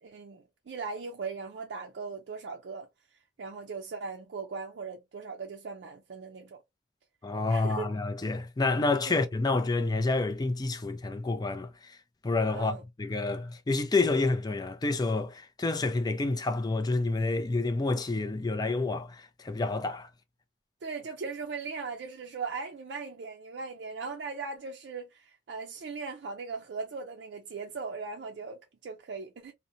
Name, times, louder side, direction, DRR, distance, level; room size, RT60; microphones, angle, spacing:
voice 1, 0.0-2.9 3.4-6.6 7.5-7.9 9.1-9.2 12.5-12.8 20.8-29.5, right 4 dB, 70° right, 0.4 m, -39 dB
voice 2, 7.2-12.0 12.2-20.1, left 3 dB, 20° left, 0.4 m, -29 dB
2.7 x 2.1 x 2.5 m
head